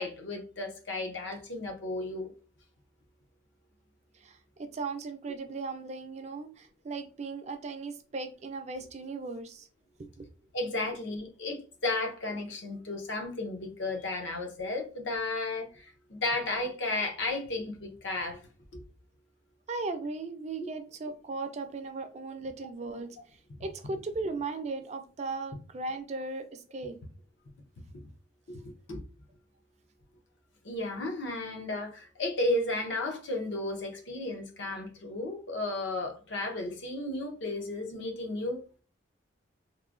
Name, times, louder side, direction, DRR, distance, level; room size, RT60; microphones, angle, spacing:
voice 1, 0.0-2.3 10.5-18.4 18.7-18.8 28.5-29.0 30.6-38.6, left 2 dB, 70° left, 0.7 m, -33 dB
voice 2, 4.1-9.7 10.0-10.3 19.7-27.0, right 3 dB, 35° right, 0.4 m, -37 dB
3.0 x 2.2 x 2.4 m
head